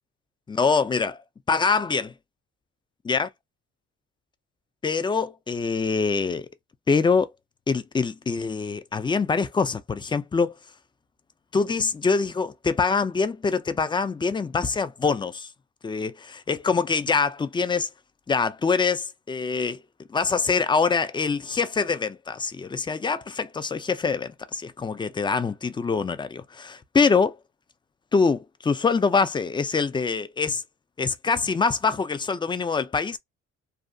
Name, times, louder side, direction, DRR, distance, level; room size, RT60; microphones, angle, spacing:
voice 1, 0.5-1.2 1.5-2.1 3.1-3.3 4.8-6.5 6.9-7.3 7.7-10.5 11.5-15.5 15.8-17.9 18.3-19.8 20.1-27.4 28.1-30.6 31.0-33.2, left 5 dB, 15° left, 0.3 m, -24 dB
2.7 x 2.2 x 2.5 m
cardioid pair, 90°, 30 cm